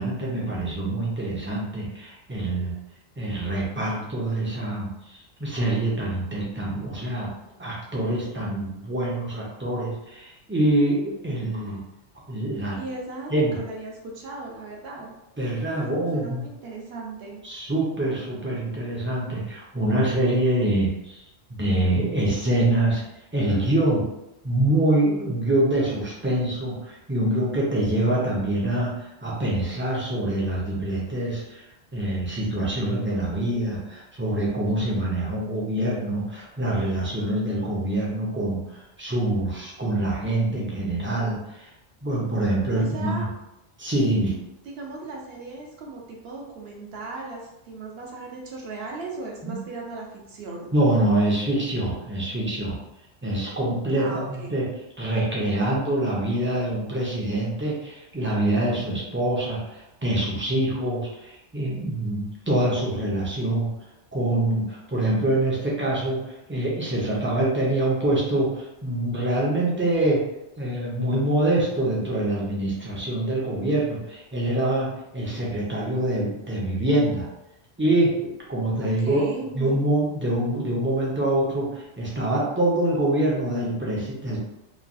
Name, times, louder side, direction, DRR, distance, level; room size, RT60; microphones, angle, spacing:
voice 1, 0.0-2.7 3.2-7.3 7.6-11.8 12.3-12.8 13.3-13.6 15.4-16.5 17.4-21.2 21.5-23.0 23.3-24.0 24.4-31.6 31.9-41.7 42.0-43.3 43.8-44.4 49.4-49.6 50.7-52.8 53.2-54.6 55.0-63.7 64.1-66.2 66.5-70.2 70.6-74.9 75.1-77.3 77.8-79.2 79.5-84.4, right 1 dB, 15° right, -5 dB, 0.4 m, -25 dB
voice 2, 12.8-15.1 15.8-17.4 42.8-43.3 44.6-50.7 53.9-54.6 78.8-79.8, right 3 dB, 65° right, -1 dB, 0.9 m, -37 dB
3.1 x 2.3 x 2.6 m, 0.89 s
omnidirectional pair, 1.2 m